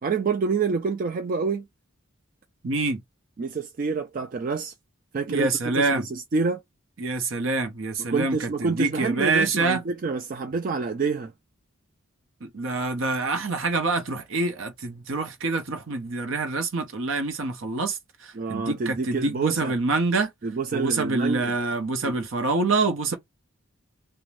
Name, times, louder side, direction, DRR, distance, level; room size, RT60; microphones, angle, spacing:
voice 1, 0.0-1.7 3.4-4.7 5.1-6.6 8.0-11.3 18.3-19.7 20.4-21.5 22.0-22.2 23.1-23.2, right 4 dB, 40° right, 0.3 m, -27 dB
voice 2, 2.6-3.0 5.3-6.0 7.0-9.8 12.4-20.3 20.7-23.2, right 3 dB, 65° right, 0.7 m, -26 dB
2.6 x 2.1 x 3.0 m
head